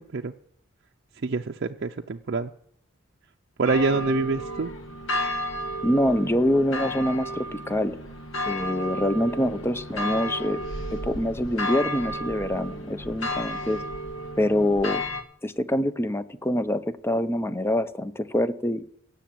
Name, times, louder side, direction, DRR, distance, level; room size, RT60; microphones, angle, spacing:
voice 1, 1.2-2.5 3.6-4.7, right 3 dB, 55° right, 3 dB, 0.5 m, -26 dB
sound 1, 3.6-15.2, equal, 75° left, 1.6 m, -32 dB
voice 2, 5.8-8.0 8.4-10.6 10.9-13.8 14.4-15.0 15.4-18.8, left 1 dB, 10° left, 12 dB, 0.6 m, -25 dB
17.5 x 7.0 x 7.6 m, 0.69 s
head